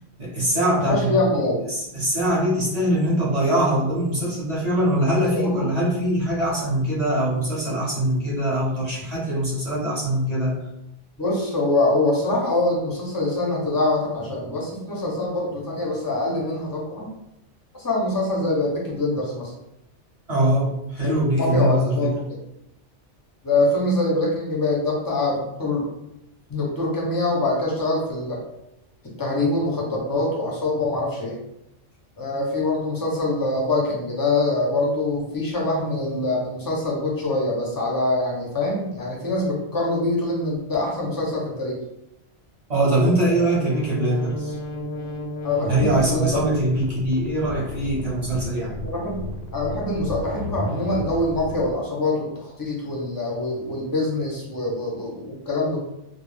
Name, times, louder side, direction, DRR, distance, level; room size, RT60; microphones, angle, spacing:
voice 1, 0.2-1.2 1.7-10.6 20.3-22.1 42.7-44.6 45.7-48.8, right 1 dB, 40° right, -6 dB, 0.7 m, -22 dB
voice 2, 0.9-1.6 5.3-5.7 11.2-17.1 17.8-19.5 21.4-22.4 23.4-25.8 26.5-28.4 29.2-31.4 32.2-41.8 43.2-43.5 45.4-46.4 48.8-55.8, left 2 dB, 30° left, -3 dB, 0.4 m, -24 dB
sound 1, 43.5-51.7, equal, 90° left, 0.9 m, -32 dB
2.3 x 2.0 x 3.2 m, 0.85 s
omnidirectional pair, 1.2 m